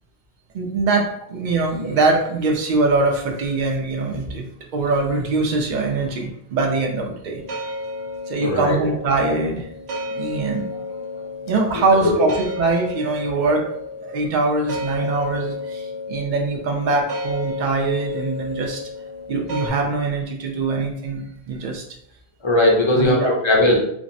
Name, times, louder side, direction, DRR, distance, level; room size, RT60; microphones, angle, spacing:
voice 1, 0.5-7.4 8.3-9.7 10.1-10.7 11.5-13.7 14.0-18.8 19.3-21.8 22.9-23.4, right 3 dB, 55° right, 1 dB, 0.6 m, -22 dB
sound 1, 7.2-19.7, left 2 dB, 90° right, 1.0 m, -32 dB
voice 2, 8.4-8.8 11.7-12.1 22.4-23.8, left 1 dB, 35° left, -1 dB, 0.5 m, -18 dB
3.4 x 2.0 x 2.6 m, 0.74 s
omnidirectional pair, 1.1 m